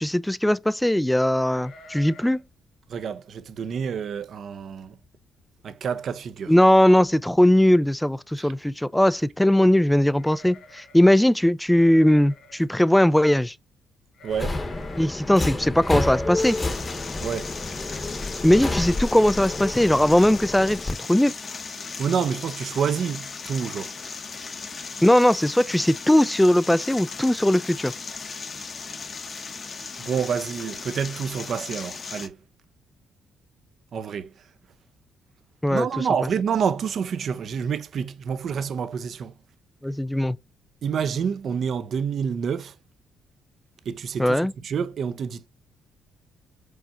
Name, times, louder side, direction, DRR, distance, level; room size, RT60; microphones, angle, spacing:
voice 1, 0.0-2.4 6.5-13.5 15.0-16.6 18.4-20.8 21.1-21.3 25.0-27.9 35.6-35.9 39.8-40.4 44.2-44.5, left 1 dB, 5° left, 0.3 m, -19 dB
sound 1, 1.6-2.5 2.8-2.9 3.3-3.6 4.2-4.3 4.6-5.1 5.4-5.5 6.6-6.7 7.0-7.5 10.1-11.1 11.7-12.7 14.1-15.1 15.7-16.3, left 2 dB, 70° left, 2.4 m, -47 dB
voice 2, 2.9-5.0 5.6-6.5 8.4-8.5 14.2-14.7 17.2-17.5 22.0-24.0 30.0-32.4 33.9-34.5 35.7-39.3 40.8-42.8 43.8-45.5, right 7 dB, 60° right, 0.6 m, -28 dB
Subway metro underground, 14.3-20.9, left 2 dB, 20° left, 0.9 m, -29 dB
sound 2, 16.4-32.3, left 4 dB, 40° left, 0.8 m, -37 dB
4.8 x 4.3 x 2.5 m
cardioid pair, 90°, 0 cm